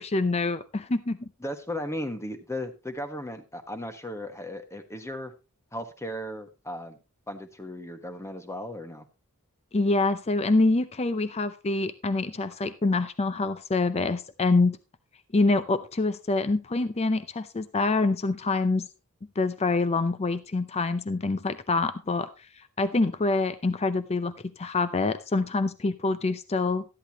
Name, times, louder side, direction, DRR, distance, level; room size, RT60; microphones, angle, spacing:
voice 1, 0.0-1.3 9.7-14.8 15.3-18.9 19.4-22.3 22.8-26.8, left 3 dB, 30° left, 12 dB, 0.6 m, -26 dB
voice 2, 1.4-5.3 5.7-7.0 7.3-9.1, left 1 dB, 15° left, 7 dB, 1.3 m, -36 dB
13.5 x 10.5 x 2.9 m, 0.28 s
head